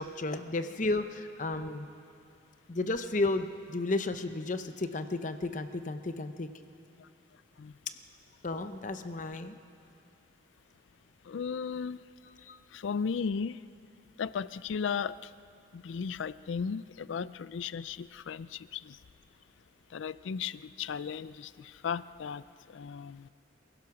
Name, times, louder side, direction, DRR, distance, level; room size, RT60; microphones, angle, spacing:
voice 1, 0.0-1.9 2.7-6.5 8.4-9.6 12.4-12.6, left 2 dB, 40° left, 9 dB, 0.7 m, -33 dB
voice 2, 11.3-12.0 12.7-13.6 14.2-15.3 15.7-19.0 19.9-22.4 22.7-23.3, left 6 dB, 75° left, 17 dB, 0.4 m, -35 dB
28.0 x 15.5 x 5.9 m, 2.5 s
head